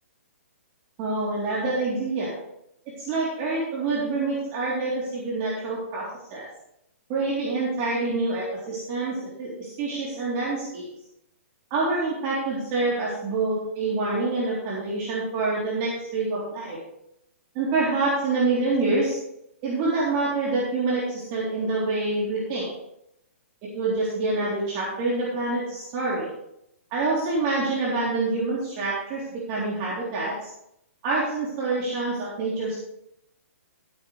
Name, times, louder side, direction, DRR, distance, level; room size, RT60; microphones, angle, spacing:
voice 1, 1.0-2.4 3.0-6.5 7.1-10.9 11.7-16.8 17.5-19.2 19.6-22.7 23.7-26.3 26.9-30.5 31.0-32.8, right 3 dB, 35° right, -6 dB, 3.8 m, -26 dB
14.5 x 9.0 x 3.4 m, 0.78 s
hypercardioid pair, 140°, 8 cm